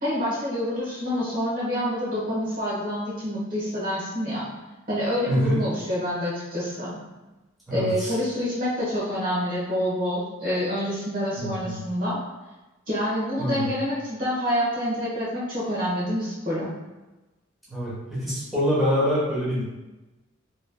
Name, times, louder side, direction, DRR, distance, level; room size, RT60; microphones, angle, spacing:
voice 1, 0.0-4.4 4.9-6.9 7.7-12.2 12.9-16.7, equal, 45° right, -7 dB, 1.3 m, -27 dB
voice 2, 5.3-5.6 7.7-8.1 11.4-11.8 13.4-13.7 17.7-19.6, equal, ahead, -10 dB, 1.1 m, -25 dB
4.0 x 3.2 x 2.3 m, 1.1 s
head